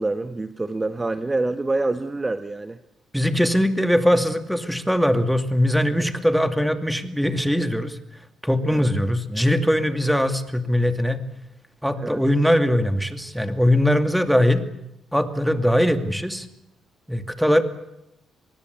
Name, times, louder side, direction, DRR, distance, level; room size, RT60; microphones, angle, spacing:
voice 1, 0.0-2.8 8.7-8.9 12.0-12.2, right 2 dB, 20° right, 10 dB, 1.2 m, -26 dB
voice 2, 3.1-8.0 8.4-11.2 11.8-14.6 15.1-16.5 17.1-17.6, equal, ahead, 8 dB, 2.5 m, -21 dB
25.5 x 20.0 x 8.3 m, 0.84 s
cardioid pair, 90°, 0 cm